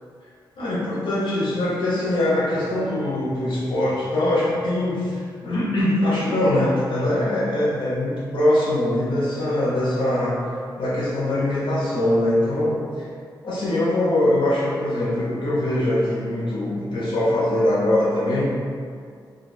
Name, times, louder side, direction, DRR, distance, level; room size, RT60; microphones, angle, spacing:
voice 1, 0.6-10.4 10.8-12.8 13.4-18.6, left 1 dB, 80° left, -7 dB, 0.7 m, -22 dB
2.7 x 2.3 x 4.1 m, 2.2 s
wide cardioid pair, 125°, 8 cm